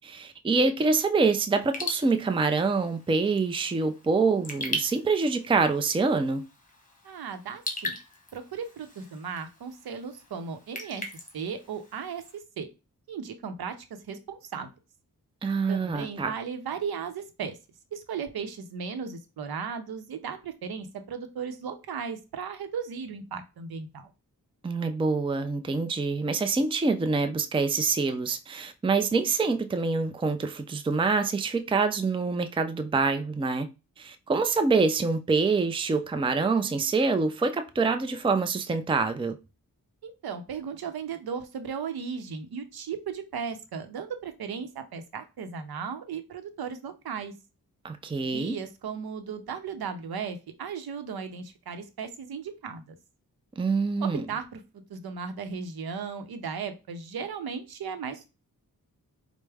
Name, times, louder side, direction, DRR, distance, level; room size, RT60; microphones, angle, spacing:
voice 1, 0.0-6.4 15.4-16.3 24.6-33.7 34.0-39.4 47.8-48.6 53.6-54.3, right 4 dB, 15° right, 0.4 m, -26 dB
Raindrop / Drip, 1.6-12.4, left 1 dB, 20° left, 1.2 m, -40 dB
voice 2, 7.0-8.0 8.3-11.0 11.3-12.7 13.1-13.7 14.1-14.7 15.7-17.6 17.9-24.1 40.0-47.3 48.2-53.0 54.0-54.6 54.9-58.3, right 6 dB, 85° right, 0.7 m, -36 dB
4.5 x 2.1 x 3.4 m
cardioid pair, 60°, 36 cm